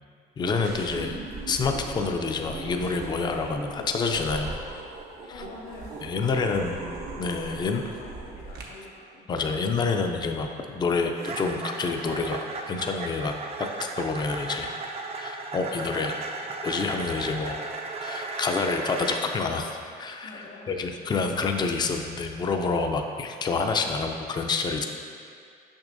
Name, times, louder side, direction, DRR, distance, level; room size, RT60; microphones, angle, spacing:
voice 1, 0.4-1.1 1.5-4.6 6.0-6.8 7.2-7.8 9.3-12.4 12.7-13.3 14.0-14.7 15.1-16.1 16.6-17.6 18.0-24.8, left 4 dB, 25° left, 4 dB, 0.4 m, -28 dB
sound 1, 0.6-8.6, right 3 dB, 70° right, 0.9 m, -39 dB
voice 2, 5.3-5.9 6.3-6.8 7.1-9.6 20.2-20.7, left 2 dB, 65° left, -2 dB, 1.0 m, -46 dB
sound 2, 5.5-5.7 6.0-6.4 6.8-7.1 7.4-7.7 8.1-8.3 8.9-9.1 9.5-9.7 11.1-19.3, right 3 dB, 35° right, 0.5 m, -36 dB
6.1 x 6.0 x 2.6 m, 2.3 s
cardioid pair, 110°, 17 cm